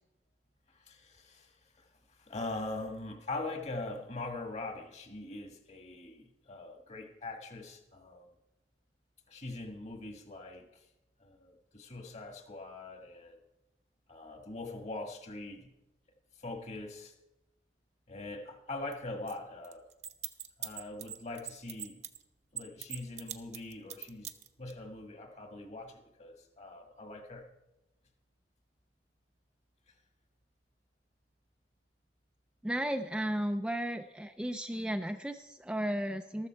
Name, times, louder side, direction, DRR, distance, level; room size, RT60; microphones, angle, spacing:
voice 1, 0.7-8.3 9.3-10.7 11.2-13.4 14.1-15.7 16.4-17.1 18.1-19.8 20.6-22.0 22.5-24.3 24.6-27.5, left 2 dB, 40° left, 5 dB, 1.6 m, -42 dB
sound 1, 18.9-19.0 19.3-19.4 19.6-22.2 22.6-24.7, right 11 dB, 40° right, 0.7 m, -40 dB
voice 2, 32.6-36.5, right 1 dB, 5° right, 6 dB, 0.4 m, -34 dB
14.0 x 13.5 x 4.5 m, 0.98 s
head